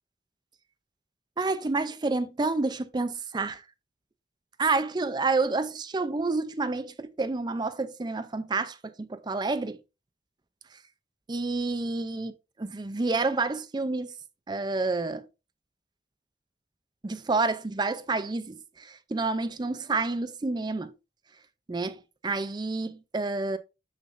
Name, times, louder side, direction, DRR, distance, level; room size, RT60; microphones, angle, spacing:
voice 1, 1.4-3.6 4.6-9.8 11.3-12.3 12.6-14.1 14.5-15.3 17.0-20.9 21.7-23.6, right 3 dB, 25° right, 0.4 m, -29 dB
6.6 x 6.3 x 2.5 m
head